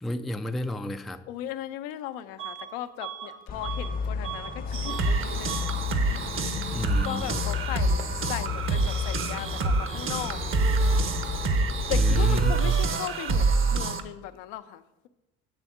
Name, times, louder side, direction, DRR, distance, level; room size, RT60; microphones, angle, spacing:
voice 1, 0.0-1.2 6.4-7.4 11.9-12.7, left 1 dB, ahead, 0.3 m, -32 dB
voice 2, 1.3-5.5 7.0-10.4 11.9-15.1, left 12 dB, 70° left, 0.6 m, -37 dB
Bus / Alarm, 2.4-2.7 3.0-4.6 4.8-5.2 5.4-5.8, right 10 dB, 75° right, 1.4 m, -38 dB
sound 1, 3.5-12.3, left 6 dB, 25° left, 0.7 m, -33 dB
sound 2, 4.7-14.0, right 3 dB, 35° right, 0.8 m, -26 dB
8.9 x 3.5 x 6.1 m
hypercardioid pair, 70°, 35 cm